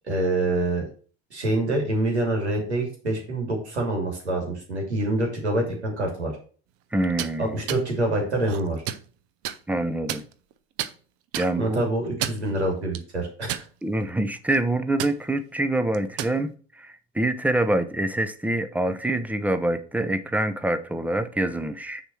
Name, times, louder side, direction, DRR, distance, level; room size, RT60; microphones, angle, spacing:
voice 1, 0.1-0.9 1.3-6.3 7.4-8.8 11.6-13.6, right 1 dB, 90° right, 2.8 m, -26 dB
voice 2, 6.9-7.6 9.7-10.3 11.4-11.8 13.8-16.5 16.8-22.0, right 1 dB, 5° right, 0.7 m, -25 dB
sound 1, 7.0-7.3 7.7-7.8 8.4-9.0 9.4-9.6 10.1-10.5 10.8-10.9 11.3-11.5 12.0-12.5 12.9-13.0 13.5-14.0 14.4-14.6 15.0-15.2 15.9-16.4, right 11 dB, 45° right, 0.8 m, -31 dB
6.6 x 4.3 x 6.2 m
hypercardioid pair, 80°, 32 cm